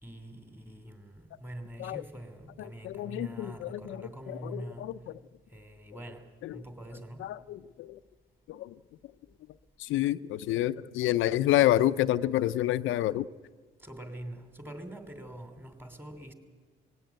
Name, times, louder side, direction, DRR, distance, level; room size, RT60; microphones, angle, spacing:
voice 1, 0.0-4.9 5.5-7.3 13.8-16.3, right 1 dB, 10° right, 3.0 m, -44 dB
voice 2, 2.8-4.1 4.4-4.9 7.2-8.0 8.5-8.7 9.8-13.3, left 14 dB, 85° left, 0.6 m, -28 dB
19.0 x 17.0 x 9.3 m
cardioid pair, 90°, 20 cm